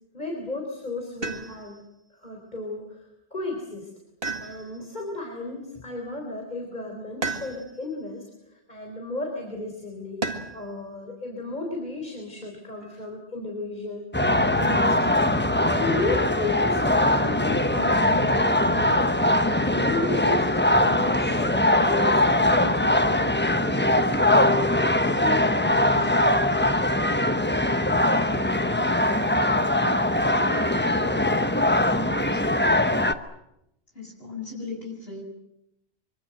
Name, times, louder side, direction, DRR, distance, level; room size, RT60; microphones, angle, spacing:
voice 1, 0.1-1.8 2.1-3.9 4.4-8.2 8.5-10.2 10.5-14.1 14.4-15.3 15.7-19.0 19.7-20.5 20.8-23.3 23.6-24.6 25.1-26.3 28.4-28.5, left 2 dB, 45° left, 1 dB, 4.2 m, -34 dB
sound 1, 1.2-1.9 4.2-5.0 7.2-7.9 10.2-10.7 12.4-13.1, right 3 dB, 65° right, 2.3 m, -33 dB
sound 2, 14.1-33.1, left 1 dB, 10° left, 1.0 m, -21 dB
voice 2, 30.9-32.4 33.9-35.2, left 4 dB, 65° left, 0 dB, 7.1 m, -39 dB
25.0 x 24.5 x 7.8 m, 0.81 s
omnidirectional pair, 1.1 m